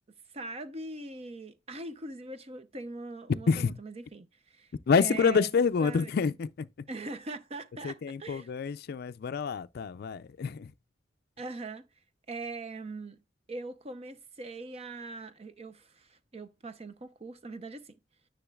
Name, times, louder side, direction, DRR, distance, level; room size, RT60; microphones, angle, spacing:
voice 1, 0.3-4.7 5.0-5.5 5.8-6.1 6.9-8.5 11.4-11.9 12.3-13.2 13.5-17.9, right 3 dB, 35° right, 0.7 m, -41 dB
voice 2, 3.5-3.8 4.9-6.9 7.8-10.7, left 5 dB, 55° left, 0.4 m, -28 dB
10.0 x 6.3 x 2.3 m
head